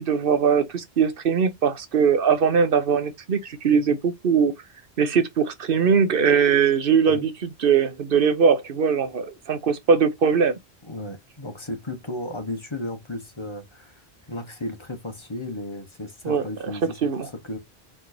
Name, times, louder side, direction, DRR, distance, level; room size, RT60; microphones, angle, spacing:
voice 1, 0.0-4.5 5.0-10.6 16.2-16.4 17.0-17.3, right 6 dB, 60° right, 0.9 m, -21 dB
voice 2, 10.9-14.0 14.3-17.6, left 1 dB, 30° left, 0.9 m, -34 dB
4.5 x 4.3 x 2.6 m
omnidirectional pair, 1.1 m